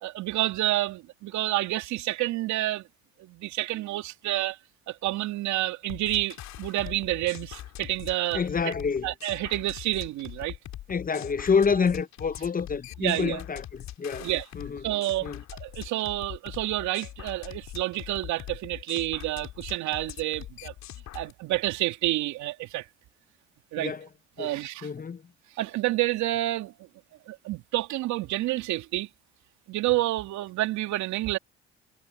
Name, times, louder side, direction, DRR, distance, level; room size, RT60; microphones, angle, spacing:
voice 1, 0.0-2.8 3.2-4.6 4.9-8.7 9.0-10.6 13.0-13.4 14.2-14.4 14.8-20.7 21.1-22.8 23.7-23.9 24.4-24.9 25.6-26.7 27.3-29.1 29.7-31.4, right 16 dB, 70° right, 2.8 m, -29 dB
sound 1, 5.9-21.3, left 13 dB, 65° left, 2.7 m, -42 dB
voice 2, 8.3-9.1 10.9-14.3 14.5-14.9 15.2-15.4 23.8-24.1 24.4-25.2, left 5 dB, 30° left, 0.9 m, -28 dB
hypercardioid pair, 60°, 30 cm